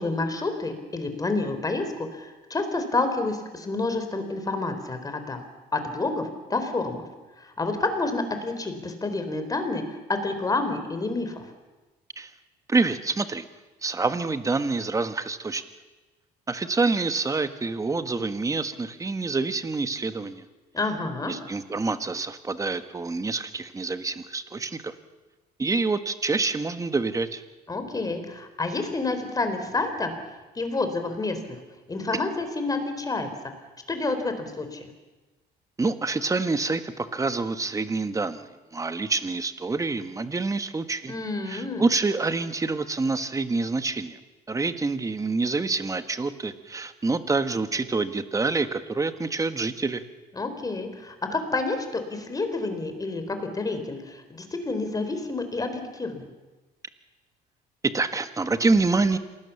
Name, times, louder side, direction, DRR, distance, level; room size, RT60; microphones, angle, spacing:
voice 1, 0.0-5.4 5.7-7.1 7.4-11.4 20.7-21.3 27.7-30.2 30.5-31.4 31.9-33.3 33.9-34.8 41.1-41.8 50.3-56.2, left 3 dB, 20° left, 8 dB, 3.9 m, -29 dB
voice 2, 12.7-13.5 13.8-15.6 16.5-20.4 21.3-24.9 25.6-27.4 35.8-41.1 41.5-44.2 44.5-50.0 57.8-59.2, right 3 dB, 20° right, 10 dB, 1.5 m, -27 dB
27.0 x 19.0 x 7.2 m, 1.2 s
cardioid pair, 110°, 17 cm